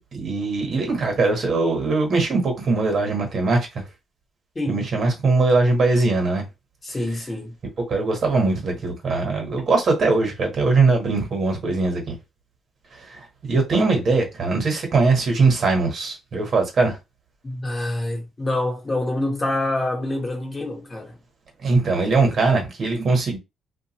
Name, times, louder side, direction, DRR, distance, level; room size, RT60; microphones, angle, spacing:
voice 1, 0.2-3.8 4.7-6.4 7.9-12.1 13.1-17.0 21.6-23.4, right 3 dB, 50° right, 1.3 m, -21 dB
voice 2, 6.8-7.5 17.4-21.2, left 1 dB, 25° left, 1.2 m, -26 dB
2.5 x 2.4 x 3.0 m
cardioid pair, 90°, 0 cm